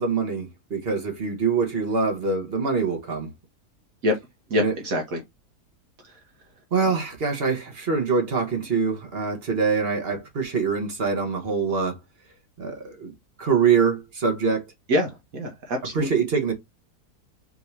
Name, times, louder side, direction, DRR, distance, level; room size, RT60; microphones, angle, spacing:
voice 1, 0.0-3.3 4.6-4.7 6.7-12.0 12.6-13.1 13.4-14.7 15.9-16.5, right 5 dB, 40° right, 1.3 m, -24 dB
voice 2, 4.5-5.2 6.0-6.1 14.9-16.1, left 1 dB, 65° right, 1.3 m, -25 dB
4.7 x 2.8 x 3.3 m
omnidirectional pair, 1.7 m